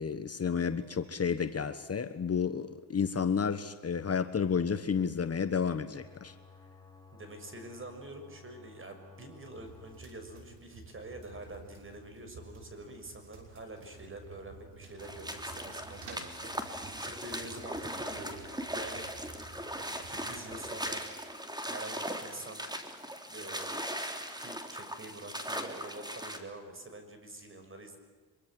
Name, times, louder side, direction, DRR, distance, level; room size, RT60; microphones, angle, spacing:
voice 1, 0.0-6.3, left 6 dB, 35° left, 10 dB, 1.4 m, -31 dB
sound 1, 6.0-10.0, left 4 dB, 10° left, 4.5 m, -55 dB
voice 2, 7.1-19.1 19.5-21.2 21.6-22.7 23.3-23.9 24.4-28.0, right 2 dB, 30° right, 7 dB, 6.4 m, -46 dB
sound 2, 9.5-20.9, right 3 dB, 80° right, 6.5 m, -52 dB
sound 3, 15.0-26.4, equal, 10° right, 3.3 m, -39 dB
25.0 x 23.5 x 7.9 m, 1.5 s
cardioid pair, 95°, 40 cm